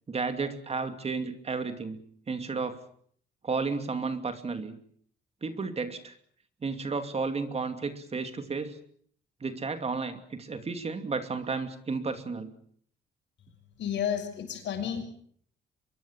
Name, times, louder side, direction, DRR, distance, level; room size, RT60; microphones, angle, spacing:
voice 1, 0.1-2.0 2.3-2.8 3.4-4.8 5.4-6.2 6.6-8.8 9.4-12.5, right 4 dB, 35° right, 8 dB, 2.7 m, -32 dB
voice 2, 13.8-15.0, left 8 dB, 70° left, 8 dB, 6.7 m, -31 dB
25.0 x 22.0 x 7.5 m, 0.62 s
cardioid pair, 110°, 19 cm